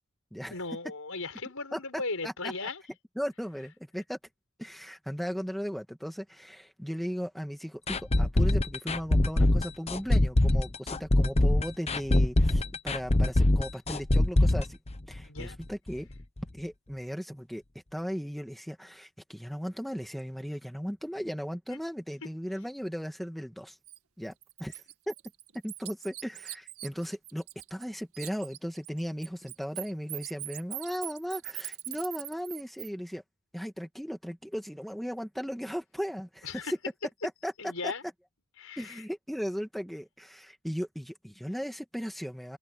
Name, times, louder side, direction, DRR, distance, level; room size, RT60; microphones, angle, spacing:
voice 1, 0.5-2.8 15.2-15.6 21.7-21.8 36.4-36.7 37.6-38.0 38.6-39.0, left 3 dB, 75° left, 5.8 m, -37 dB
voice 2, 1.7-2.3 3.2-4.2 4.6-14.8 15.1-16.1 16.6-17.6 17.9-23.8 24.2-24.3 24.6-25.1 25.6-27.4 27.7-33.2 33.5-36.5 37.4-37.9 38.8-42.6, equal, ahead, 2.4 m, -37 dB
sound 1, 7.9-15.6 15.9-16.0 16.4-16.5, left 1 dB, 30° left, 1.0 m, -23 dB
Bird, 23.9-24.0 24.4-27.9 28.1-32.9, right 15 dB, 85° right, 2.1 m, -41 dB
open air
head